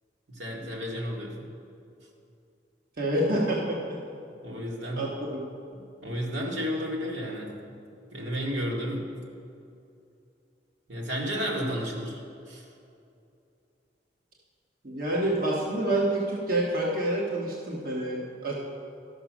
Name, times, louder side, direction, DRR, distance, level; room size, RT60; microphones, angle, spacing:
voice 1, 0.3-1.5 4.4-5.1 5.7-7.7 8.1-9.1 10.9-12.2 12.5-12.7, equal, 85° right, -2 dB, 2.0 m, -32 dB
voice 2, 3.0-4.0 5.0-5.1 5.3-5.4 14.8-18.5, right 1 dB, 50° right, -3 dB, 1.2 m, -27 dB
12.5 x 6.0 x 6.1 m, 2.6 s
head